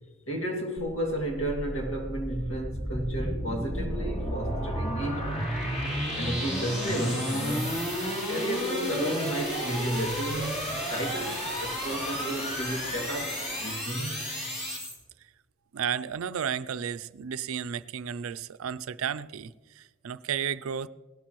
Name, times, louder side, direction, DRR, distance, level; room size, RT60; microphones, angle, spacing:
voice 1, 0.3-5.5 6.2-7.9 8.3-10.6 10.9-14.2, right 1 dB, 75° left, 2.3 m, -32 dB
sound 1, 0.8-15.0, equal, 30° left, 3.0 m, -32 dB
voice 2, 15.7-20.9, right 8 dB, 75° right, 0.4 m, -33 dB
18.5 x 12.5 x 3.0 m
head